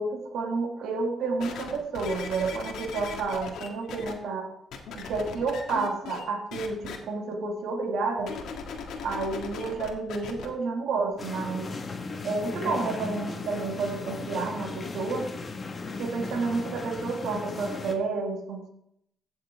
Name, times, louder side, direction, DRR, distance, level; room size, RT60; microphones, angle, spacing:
voice 1, 0.0-4.5 4.9-8.4 9.0-11.7 12.2-15.3 16.0-18.7, right 4 dB, 75° right, 2 dB, 2.0 m, -30 dB
sound 1, 1.4-4.1 4.7-6.2 6.5-7.0 8.2-10.5 11.1-11.2, left 6 dB, 80° left, 1.7 m, -38 dB
sound 2, 11.2-17.9, left 3 dB, 35° left, 1.4 m, -36 dB
15.5 x 6.5 x 3.6 m, 0.74 s
cardioid pair, 90°, 0 cm